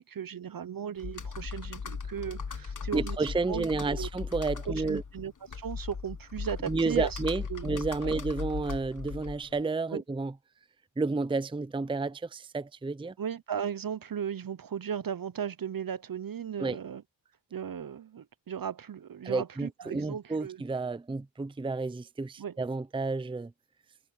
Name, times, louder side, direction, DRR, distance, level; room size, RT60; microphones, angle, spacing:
voice 1, 0.0-3.2 3.5-4.1 4.7-7.2 7.5-7.7 8.0-8.1 9.9-10.0 13.0-17.0 17.5-20.6 22.4-22.6, right 8 dB, 45° right, 0.8 m, -36 dB
Computer keyboard, 1.0-9.6, left 5 dB, 40° left, 1.5 m, -38 dB
voice 2, 2.9-5.0 6.7-10.3 11.0-13.1 16.6-16.8 19.2-23.5, right 3 dB, 10° right, 0.6 m, -31 dB
cardioid pair, 65°, 48 cm